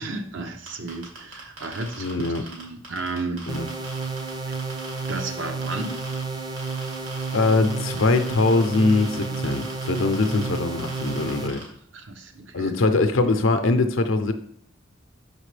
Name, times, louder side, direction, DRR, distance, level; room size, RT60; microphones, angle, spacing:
voice 1, 0.0-3.5 5.1-6.0 11.9-12.7, right 3 dB, 65° right, 6 dB, 0.7 m, -33 dB
sound 1, 0.7-5.2 5.6-6.2 6.6-11.6, right 3 dB, 80° right, 2.1 m, -40 dB
voice 2, 2.0-2.4 3.5-3.7 7.3-11.6 12.5-14.3, left 3 dB, 75° left, 8 dB, 0.6 m, -22 dB
sound 2, 3.5-11.5, right 4 dB, 20° right, 0.5 m, -31 dB
5.9 x 5.3 x 3.3 m, 0.65 s
head